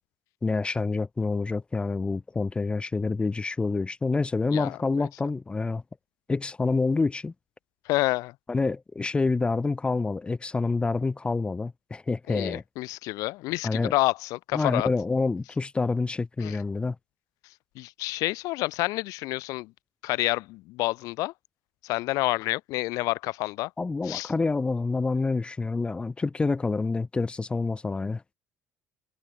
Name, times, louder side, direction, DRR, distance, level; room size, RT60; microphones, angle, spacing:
voice 1, 0.4-5.8 6.3-7.3 8.5-12.6 13.6-13.9 14.5-16.9 23.8-28.2, left 3 dB, 15° left, 1.6 m, -27 dB
voice 2, 4.5-5.1 7.9-8.3 12.3-14.9 16.4-16.6 17.8-19.7 20.0-21.3 21.8-23.7 24.1-24.3, left 20 dB, 80° left, 1.2 m, -29 dB
cardioid pair, 120°, 6 cm